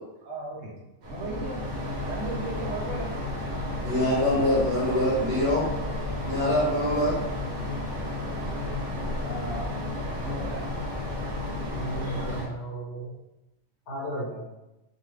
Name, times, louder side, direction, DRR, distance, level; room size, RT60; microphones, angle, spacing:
voice 1, 0.2-0.8 1.1-1.8 2.1-3.2 4.3-4.7 9.2-9.7 10.2-10.8 11.3-11.6, right 2 dB, 80° right, -3 dB, 1.0 m, -36 dB
sound 1, 1.0-12.4, left 1 dB, 50° right, 0.6 m, -32 dB
voice 2, 3.8-5.7 6.2-7.2, left 1 dB, 30° right, -9 dB, 1.3 m, -24 dB
voice 3, 11.8-13.1 13.9-14.5, right 2 dB, 60° left, -5 dB, 1.3 m, -34 dB
2.7 x 2.3 x 3.2 m, 0.96 s
omnidirectional pair, 1.3 m